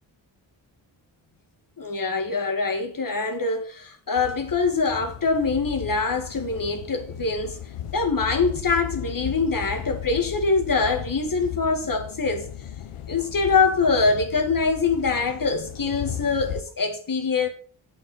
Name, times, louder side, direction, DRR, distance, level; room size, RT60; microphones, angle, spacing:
voice 1, 1.8-7.6 7.9-12.5 13.1-17.5, left 4 dB, 40° left, 2.2 m, -24 dB
sound 1, 4.2-16.6, left 10 dB, 90° left, 1.0 m, -36 dB
7.8 x 5.9 x 6.3 m
cardioid pair, 55°, 49 cm